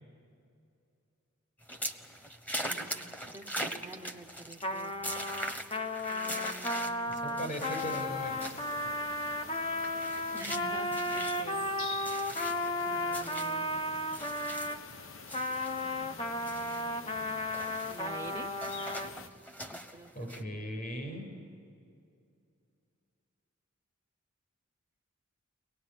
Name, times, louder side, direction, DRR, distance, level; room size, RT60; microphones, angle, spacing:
sound 1, 1.6-15.0 15.3-20.4, equal, 10° left, 1.2 m, -42 dB
voice 1, 2.7-4.9 6.1-7.5 10.3-11.6 12.8-14.5 15.8-18.5 19.7-20.3, right 1 dB, 10° right, 6 dB, 0.8 m, -49 dB
Trumpet, 4.6-14.8 15.3-19.1, left 1 dB, 25° left, 0.9 m, -34 dB
voice 2, 7.1-8.7 20.1-21.3, equal, 45° left, 4 dB, 6.7 m, -39 dB
sound 2, 7.8-19.3, left 5 dB, 65° left, 1.0 m, -47 dB
23.5 x 19.5 x 10.0 m, 2.5 s
head